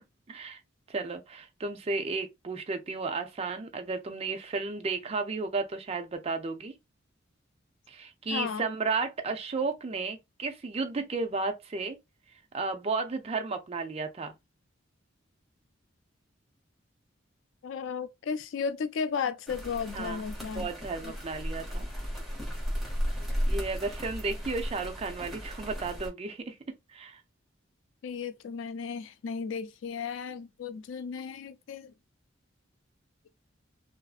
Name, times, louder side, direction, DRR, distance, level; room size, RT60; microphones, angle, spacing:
voice 1, 0.3-0.6 0.9-6.7 7.9-12.0 12.5-14.3 19.9-20.2 20.5-21.9 23.5-26.6 26.9-27.2, right 4 dB, 30° right, 0.4 m, -33 dB
voice 2, 8.3-8.7 17.6-20.7 21.0-21.1 28.0-31.9, left 6 dB, 75° left, 0.3 m, -34 dB
sound 1, 19.5-26.1, equal, ahead, 1.0 m, -34 dB
2.6 x 2.3 x 2.4 m
head